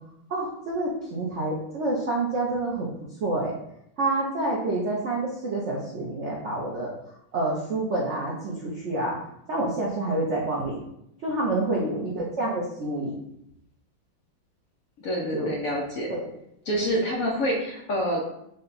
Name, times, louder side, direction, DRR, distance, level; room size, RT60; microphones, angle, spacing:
voice 1, 0.3-2.9 3.2-3.5 4.0-9.2 9.5-10.8 11.2-13.1 15.3-15.5 16.1-16.3, right 2 dB, 80° right, -4 dB, 0.6 m, -28 dB
voice 2, 11.6-12.1 15.0-16.1 16.6-18.2, equal, 70° left, -1 dB, 0.8 m, -27 dB
5.4 x 2.2 x 3.9 m, 0.78 s
omnidirectional pair, 2.2 m